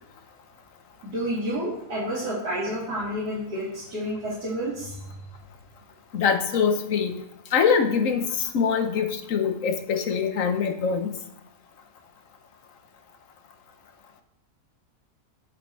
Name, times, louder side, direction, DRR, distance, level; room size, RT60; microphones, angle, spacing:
voice 1, 1.0-5.2, equal, 90° right, -9 dB, 3.3 m, -30 dB
voice 2, 6.1-7.2 7.5-11.1, left 6 dB, 60° left, 7 dB, 1.3 m, -24 dB
9.1 x 8.1 x 3.3 m, 0.88 s
omnidirectional pair, 1.7 m